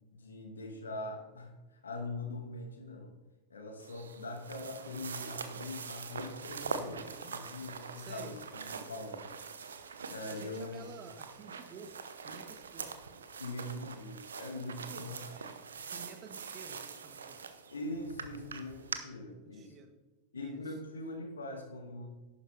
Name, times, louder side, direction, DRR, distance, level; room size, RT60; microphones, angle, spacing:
voice 1, 0.1-3.1 3.5-9.3 10.1-10.9 13.4-15.3 17.7-19.7 20.3-22.1, left 2 dB, 70° left, 4 dB, 2.0 m, -42 dB
sound 1, 3.8-19.0, right 5 dB, 70° right, 0.8 m, -44 dB
voice 2, 6.9-7.3 8.0-8.4 10.3-11.9 12.2-12.9 14.9-15.6 15.9-17.4 19.2-19.9 20.3-20.8, right 5 dB, 30° right, 7 dB, 1.3 m, -51 dB
11.5 x 9.1 x 3.4 m, 1.1 s
figure-of-eight pair, 90°, 0 cm